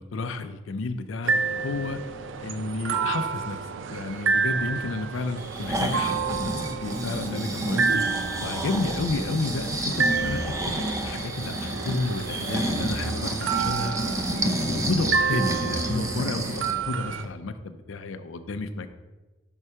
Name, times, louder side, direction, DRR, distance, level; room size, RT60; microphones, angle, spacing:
voice 1, 0.0-2.0 2.4-3.6 3.9-8.0 8.4-14.0 14.4-18.9, left 3 dB, 85° left, 9 dB, 0.5 m, -31 dB
sound 1, 1.2-17.2, right 5 dB, 75° right, 0.4 m, -30 dB
Breathing, 5.4-16.8 17.2-17.3, right 1 dB, 15° right, 0.5 m, -30 dB
5.4 x 4.7 x 5.6 m, 1.1 s
head